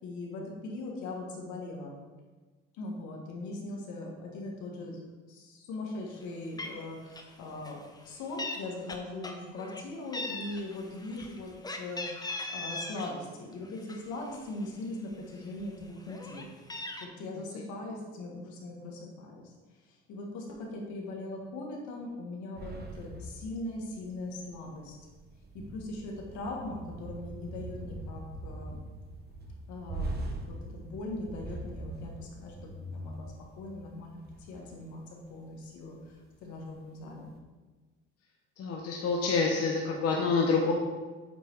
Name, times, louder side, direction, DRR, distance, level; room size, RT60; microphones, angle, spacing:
voice 1, 0.0-2.0 2.8-5.0 5.3-7.8 8.0-16.5 17.0-19.5 19.8-24.9 25.5-28.8 29.7-30.1 30.5-35.0 35.3-37.3, left 2 dB, 75° left, -1 dB, 1.6 m, -40 dB
Meow, 6.2-6.3 6.6-6.8 7.1-7.4 7.6-8.6 8.9-9.8 10.1-13.1 13.5-14.6 15.1-15.2 15.5-17.1, left 2 dB, 15° left, 0.7 m, -39 dB
sound 1, 22.6-35.0 35.3-35.5 35.9-36.6 37.0-37.4, right 1 dB, 35° right, 1.0 m, -42 dB
voice 2, 38.6-40.7, left 4 dB, 55° left, 0 dB, 0.9 m, -27 dB
8.0 x 3.3 x 4.6 m, 1.3 s
cardioid pair, 100°, 29 cm